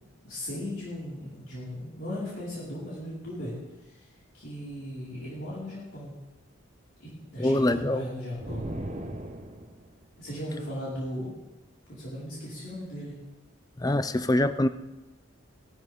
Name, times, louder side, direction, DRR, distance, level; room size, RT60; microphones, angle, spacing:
voice 1, 0.2-3.5 3.8-4.1 4.3-6.1 7.0-8.7 10.2-11.3 11.9-13.1, equal, 65° left, -9 dB, 5.1 m, -37 dB
voice 2, 7.4-8.0 13.8-14.7, left 1 dB, 20° left, 12 dB, 0.5 m, -24 dB
sound 1, 8.4-10.0, right 1 dB, 35° right, 1.1 m, -37 dB
18.5 x 13.5 x 3.7 m, 1.0 s
head